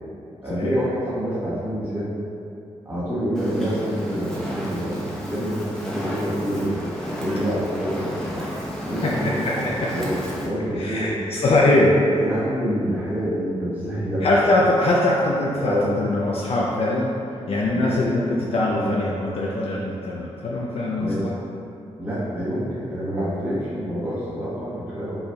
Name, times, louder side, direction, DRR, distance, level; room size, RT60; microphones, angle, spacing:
voice 1, 0.4-2.1 2.8-6.9 7.2-8.4 8.8-11.2 12.2-14.2 15.6-15.9 17.7-17.9 18.7-18.9 21.0-21.2 22.0-25.1, equal, 15° right, -11 dB, 1.2 m, -27 dB
Fire, 3.3-10.5, equal, 5° left, 0.9 m, -32 dB
voice 2, 9.0-9.9 10.8-12.2 14.2-17.1 17.5-21.3, left 1 dB, 60° left, -4 dB, 0.5 m, -22 dB
5.5 x 4.2 x 2.3 m, 2.7 s
wide cardioid pair, 105°, 11 cm